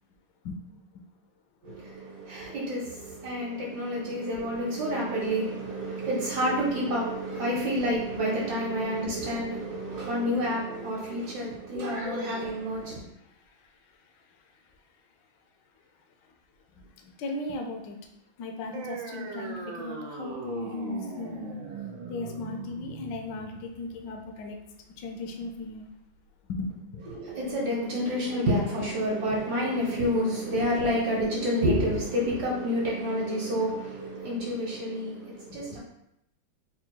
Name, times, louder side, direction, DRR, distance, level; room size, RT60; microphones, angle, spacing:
voice 1, 1.6-13.0 27.1-35.8, equal, 65° right, -4 dB, 1.4 m, -29 dB
voice 2, 16.8-18.0 18.4-21.6 22.1-24.6 25.0-25.9 26.5-27.1, left 3 dB, 75° left, 3 dB, 1.2 m, -36 dB
sound 1, 18.7-25.7, right 5 dB, 90° right, 1.4 m, -40 dB
4.1 x 2.3 x 4.4 m, 0.80 s
omnidirectional pair, 2.1 m